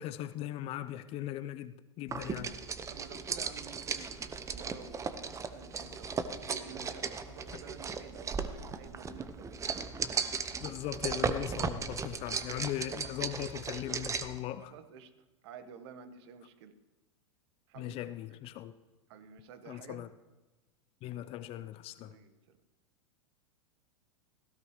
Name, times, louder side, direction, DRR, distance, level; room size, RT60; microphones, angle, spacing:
voice 1, 0.0-2.5 10.6-14.7 17.8-18.7 19.7-20.1 21.0-22.1, left 13 dB, 35° left, 0.6 m, -39 dB
sound 1, 2.1-14.4, right 5 dB, 20° right, 0.9 m, -37 dB
voice 2, 2.9-6.1 6.4-9.8 14.6-16.7 17.7-18.4 19.1-20.1 22.0-22.6, right 6 dB, 55° right, 1.5 m, -51 dB
17.0 x 16.5 x 3.3 m
figure-of-eight pair, 95°, 16 cm